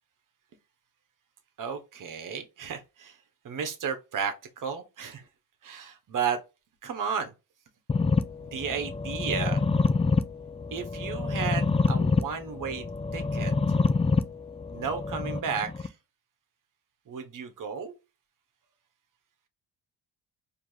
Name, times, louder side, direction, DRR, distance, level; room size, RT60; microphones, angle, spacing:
voice 1, 1.6-3.2 3.4-5.2 5.6-6.4 6.8-7.3 8.4-9.6 10.7-12.8 13.1-13.5 14.7-15.9 17.1-17.9, right 6 dB, 50° right, 1.3 m, -33 dB
sound 1, 7.9-15.9, left 4 dB, 15° left, 0.4 m, -27 dB
4.6 x 3.0 x 2.8 m
cardioid pair, 100°, 40 cm